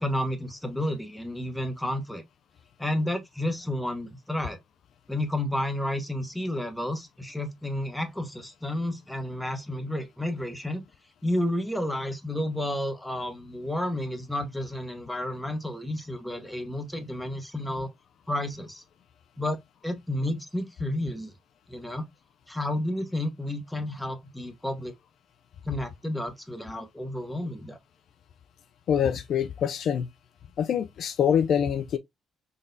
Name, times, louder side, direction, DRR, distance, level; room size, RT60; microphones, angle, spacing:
voice 1, 0.0-2.2 2.8-4.6 5.1-10.8 11.2-17.9 18.3-18.8 19.4-19.6 19.8-21.3 21.7-22.1 22.5-24.9 25.6-27.8, left 1 dB, 5° left, 0.8 m, -31 dB
voice 2, 28.9-30.1 30.6-32.0, left 8 dB, 65° left, 0.3 m, -25 dB
3.9 x 2.2 x 2.5 m
cardioid pair, 90°, 0 cm